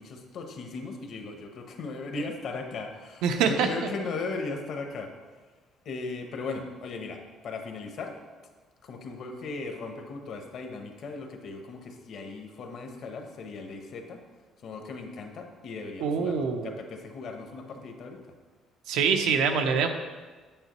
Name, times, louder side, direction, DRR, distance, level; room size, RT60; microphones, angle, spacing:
voice 1, 0.0-5.1 5.8-8.2 8.8-14.2 14.6-18.2, left 3 dB, 45° left, 4 dB, 0.9 m, -37 dB
voice 2, 3.2-3.9 16.0-16.8 18.9-19.9, right 6 dB, 85° right, 5 dB, 0.7 m, -25 dB
8.8 x 7.4 x 3.0 m, 1.4 s
cardioid pair, 175°, 0 cm